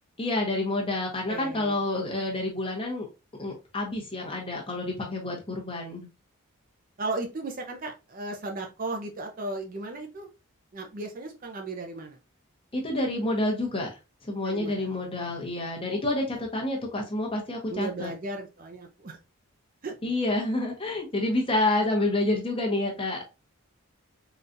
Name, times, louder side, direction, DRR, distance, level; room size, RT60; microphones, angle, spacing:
voice 1, 0.2-3.1 3.4-6.1 12.7-18.1 20.0-23.2, left 2 dB, 25° left, 0 dB, 0.8 m, -28 dB
voice 2, 1.3-1.8 7.0-10.3 10.7-12.2 14.5-15.0 15.2-15.4 16.3-16.4 17.7-19.2 19.8-19.9, right 2 dB, 40° right, 3 dB, 0.5 m, -35 dB
3.8 x 2.3 x 2.5 m, 0.28 s
head